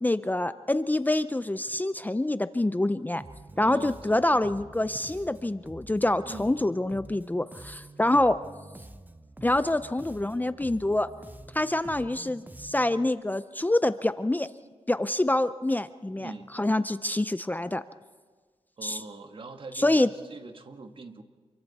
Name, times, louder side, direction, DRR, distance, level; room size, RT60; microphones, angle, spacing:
voice 1, 0.0-3.2 3.6-8.4 9.4-11.1 11.5-14.5 14.9-17.8 18.8-19.0 19.8-20.1, left 1 dB, 15° left, 13 dB, 0.5 m, -26 dB
Bass guitar, 3.2-13.1, right 2 dB, 15° right, 0.9 m, -47 dB
voice 2, 3.5-4.6 6.2-6.5 16.2-16.5 18.8-21.2, right 3 dB, 50° right, 6 dB, 1.5 m, -43 dB
28.0 x 23.0 x 4.2 m, 1.4 s
wide cardioid pair, 95°, 11 cm